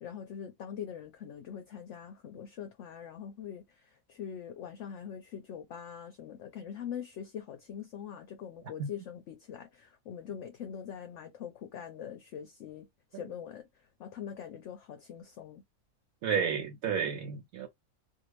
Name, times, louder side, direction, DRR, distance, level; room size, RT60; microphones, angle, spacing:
voice 1, 0.0-15.6, left 8 dB, 65° left, 0.8 m, -43 dB
voice 2, 16.2-17.7, right 6 dB, 70° right, 1.0 m, -31 dB
2.7 x 2.5 x 3.0 m
omnidirectional pair, 1.6 m